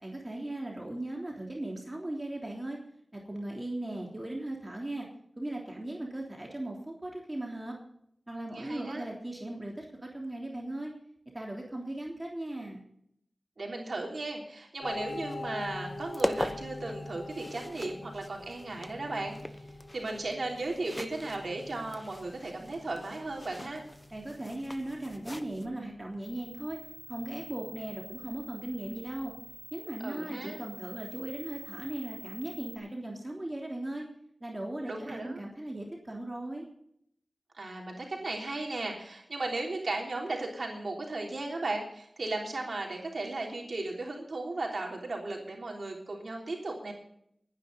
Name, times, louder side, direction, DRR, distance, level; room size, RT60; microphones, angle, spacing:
voice 1, 0.0-2.8 3.1-5.1 5.4-7.8 8.3-10.9 11.3-12.8 24.1-26.8 27.1-29.3 29.7-34.1 34.4-36.6, right 1 dB, 30° right, -1 dB, 3.3 m, -38 dB
voice 2, 8.5-9.1 13.6-19.3 19.9-23.8 30.0-30.6 34.9-35.4 37.6-46.9, right 2 dB, 75° right, 0 dB, 3.4 m, -36 dB
sound 1, 14.8-29.6, left 2 dB, 45° left, 5.9 m, -45 dB
sound 2, 14.8-25.7, left 1 dB, 20° left, 1.1 m, -41 dB
sound 3, 26.2-32.8, equal, 75° left, 5.9 m, -48 dB
21.0 x 10.0 x 4.0 m, 0.70 s
wide cardioid pair, 50°, 0 cm